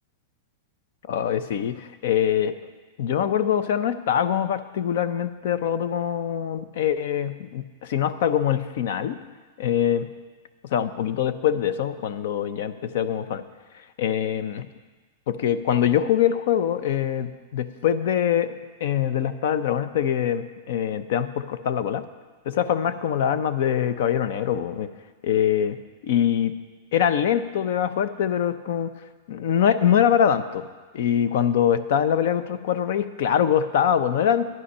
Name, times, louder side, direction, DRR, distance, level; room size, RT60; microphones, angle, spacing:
voice 1, 1.1-2.6 3.0-9.2 9.6-10.1 10.7-13.4 14.0-14.7 15.3-18.5 18.8-22.0 22.5-24.9 25.2-25.8 26.0-26.5 26.9-28.9 29.3-30.6 30.9-34.5, left 9 dB, 50° left, 12 dB, 0.6 m, -23 dB
11.5 x 10.5 x 5.5 m, 1.3 s
supercardioid pair, 180°, 0 cm